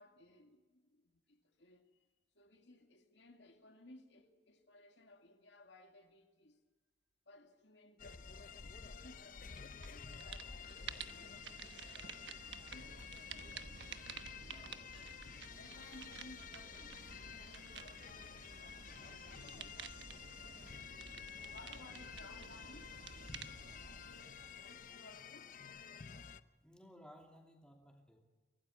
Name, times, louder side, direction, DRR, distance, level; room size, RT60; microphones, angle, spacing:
voice 1, 0.0-2.1 2.3-6.6 7.3-8.3 8.6-11.4 11.8-13.1 14.1-14.6 15.1-20.0 21.0-23.2 23.5-25.6, left 2 dB, 80° left, 2.2 m, -61 dB
sound 1, 8.0-26.4, left 7 dB, 45° left, 0.7 m, -51 dB
sound 2, 9.5-9.9 10.1-25.1, right 6 dB, 80° right, 1.1 m, -52 dB
voice 2, 14.4-14.9 26.6-28.2, equal, 5° left, 2.7 m, -59 dB
24.5 x 17.0 x 7.1 m
head